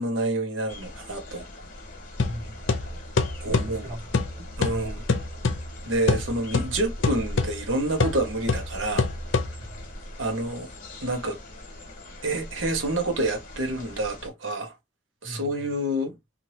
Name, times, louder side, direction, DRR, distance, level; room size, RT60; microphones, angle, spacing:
voice 1, 0.0-1.4 3.4-3.8 4.6-5.0 5.9-9.1 10.2-10.7 11.0-11.4 12.2-14.7 15.2-16.1, right 1 dB, 75° right, 1.1 m, -28 dB
sound 1, 0.7-14.3, left 1 dB, 45° left, 1.1 m, -41 dB
sound 2, 2.2-9.9, left 3 dB, 75° left, 0.6 m, -28 dB
voice 2, 2.2-3.0 3.4-4.1 4.4-5.0 9.6-9.9 15.2-15.7, equal, 55° right, 1.4 m, -42 dB
3.1 x 2.7 x 2.8 m
head